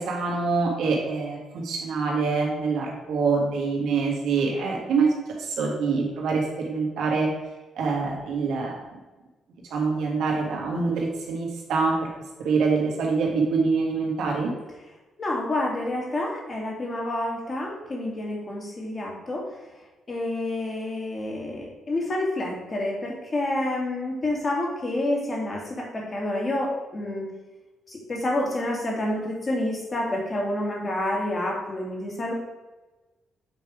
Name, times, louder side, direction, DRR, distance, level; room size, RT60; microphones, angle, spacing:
voice 1, 0.0-5.1 5.4-7.3 7.7-8.8 9.7-11.9 12.4-14.5, right 4 dB, 85° right, -1 dB, 1.7 m, -25 dB
voice 2, 15.2-19.5 20.1-27.3 27.9-32.3, left 1 dB, 35° left, -1 dB, 2.0 m, -28 dB
7.8 x 3.4 x 4.8 m, 1.2 s
cardioid pair, 90°, 0 cm